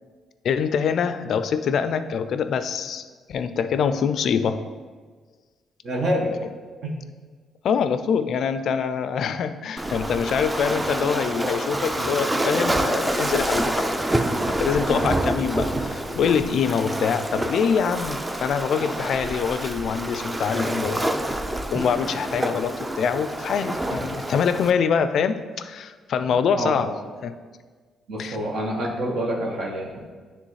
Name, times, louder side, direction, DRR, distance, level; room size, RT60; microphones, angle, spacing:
voice 1, 0.4-4.7 7.6-13.9 14.4-21.1 21.7-26.9 27.2-27.3 28.2-28.4, left 6 dB, 65° left, 11 dB, 0.3 m, -24 dB
voice 2, 5.8-6.3 6.8-6.9 26.6-26.9 28.1-29.9, equal, 70° right, -3 dB, 1.1 m, -26 dB
Waves surf, 9.8-24.7, right 1 dB, 15° right, 0.4 m, -27 dB
9.5 x 3.4 x 3.2 m, 1.5 s
cardioid pair, 90°, 0 cm